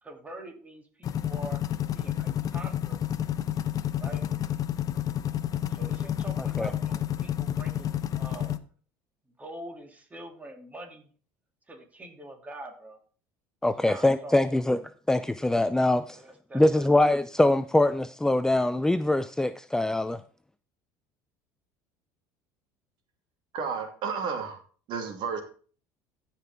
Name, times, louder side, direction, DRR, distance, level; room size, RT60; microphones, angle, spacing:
voice 1, 0.0-1.6 1.9-3.0 4.0-4.2 5.7-8.6 9.4-11.1 11.7-13.0 13.8-14.6 16.1-17.0, right 1 dB, 15° right, 3 dB, 2.8 m, -44 dB
sound 1, 1.0-8.6, left 10 dB, 40° left, 0.8 m, -30 dB
voice 2, 6.4-6.7 13.6-14.8 15.1-16.2 16.5-20.2, left 1 dB, 5° left, 11 dB, 0.5 m, -23 dB
voice 3, 23.5-24.6 24.9-25.4, right 6 dB, 60° right, 5 dB, 2.5 m, -32 dB
15.0 x 5.8 x 3.6 m, 0.40 s
supercardioid pair, 100°, 9 cm